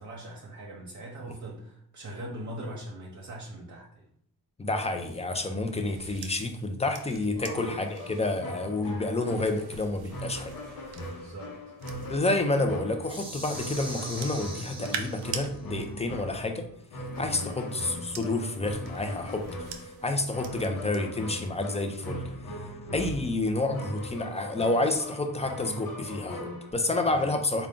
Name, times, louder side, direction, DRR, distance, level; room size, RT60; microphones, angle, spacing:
voice 1, 0.0-4.0 7.3-7.7 11.1-11.6 17.2-17.5 27.2-27.3, right 1 dB, 50° right, -2 dB, 0.9 m, -41 dB
voice 2, 4.6-10.5 12.1-16.7 17.2-22.2 22.9-27.7, left 2 dB, 15° left, 6 dB, 0.5 m, -29 dB
sound 1, 4.9-12.4 13.0-15.5 16.7-21.0 21.3-21.7, right 7 dB, 85° right, 0.5 m, -45 dB
sound 2, 7.5-26.7, equal, 65° left, 0.9 m, -40 dB
sound 3, 13.0-15.6, right 1 dB, 15° right, 1.0 m, -42 dB
3.7 x 2.3 x 3.6 m, 0.65 s
cardioid pair, 80°, 37 cm